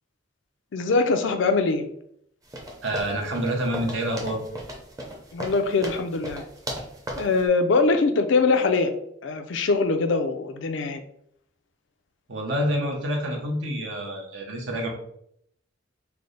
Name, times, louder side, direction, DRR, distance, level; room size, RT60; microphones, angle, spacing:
voice 1, 0.7-1.9 5.3-6.4 7.2-8.9 9.2-11.0, left 3 dB, 75° left, 7 dB, 0.4 m, -22 dB
sound 1, 2.5-7.4, equal, 20° right, 0.6 m, -37 dB
voice 2, 2.8-4.4 12.3-14.9, equal, 75° right, 1 dB, 0.8 m, -27 dB
3.3 x 2.0 x 3.8 m, 0.70 s
head